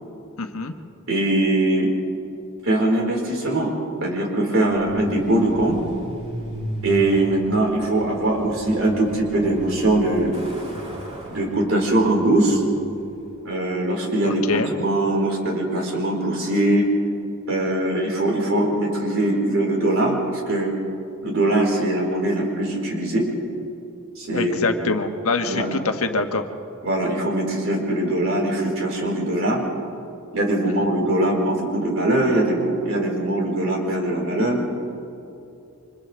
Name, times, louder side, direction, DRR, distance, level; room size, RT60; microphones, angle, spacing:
voice 1, 0.4-0.7 14.3-14.7 24.3-26.4 30.7-30.9, left 3 dB, 80° left, 6 dB, 1.3 m, -24 dB
voice 2, 1.1-1.9 2.6-3.7 4.0-5.8 6.8-10.4 11.3-12.6 13.4-16.9 17.5-20.7 21.2-23.3 24.2-24.8 25.4-25.7 26.8-29.6 30.3-34.6, right 1 dB, 65° right, -2 dB, 4.7 m, -21 dB
Truck, 4.7-13.4, equal, 30° right, 6.7 m, -36 dB
29.5 x 26.0 x 3.4 m, 2.7 s
head